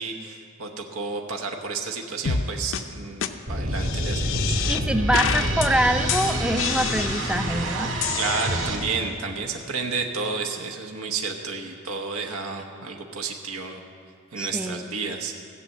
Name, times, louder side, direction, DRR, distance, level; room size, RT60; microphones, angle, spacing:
voice 1, 0.0-4.6 7.6-7.7 8.1-13.8 14.3-15.3, right 4 dB, 90° right, 2 dB, 1.1 m, -31 dB
sound 1, 2.3-2.5 2.7-2.8 3.2-3.3 3.7-4.8 5.1-5.7 6.1-7.5 8.0-9.0, left 7 dB, 65° left, 0.6 m, -28 dB
sound 2, 3.5-8.8, right 1 dB, 60° right, 2.0 m, -27 dB
voice 2, 4.7-7.9 14.4-14.9, right 1 dB, 5° right, 8 dB, 0.5 m, -25 dB
15.5 x 6.6 x 8.4 m, 2.4 s
head